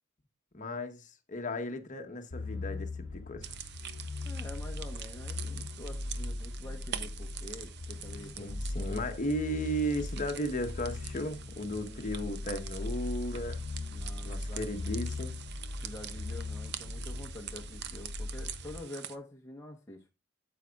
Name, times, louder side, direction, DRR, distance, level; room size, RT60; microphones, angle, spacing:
voice 1, 0.5-3.5 8.4-13.6 14.2-15.4, equal, 40° left, 1.1 m, -35 dB
sound 1, 2.3-18.8, left 2 dB, 65° left, 0.8 m, -39 dB
sound 2, 3.4-19.2, right 10 dB, 60° right, 0.6 m, -46 dB
voice 2, 4.2-8.6 11.8-12.1 13.9-15.0 15.8-20.0, left 1 dB, 15° left, 1.1 m, -47 dB
9.0 x 7.9 x 2.3 m
head